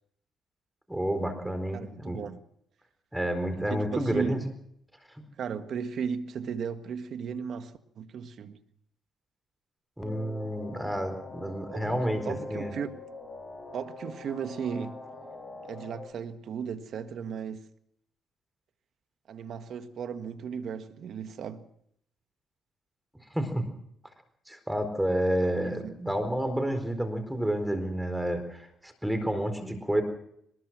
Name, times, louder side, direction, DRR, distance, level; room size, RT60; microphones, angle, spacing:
voice 1, 0.9-2.2 3.1-4.4 10.0-12.7 23.3-23.6 24.5-30.0, right 1 dB, 5° right, 4.3 m, -30 dB
voice 2, 1.7-2.4 3.5-4.3 5.4-8.6 11.7-12.0 12.2-13.0 13.7-15.0 15.6-17.6 19.3-21.7 25.6-25.9, right 7 dB, 65° right, 1.6 m, -36 dB
sound 1, 10.0-16.0, left 2 dB, 20° left, 6.4 m, -43 dB
22.5 x 20.5 x 6.1 m
cardioid pair, 90°, 0 cm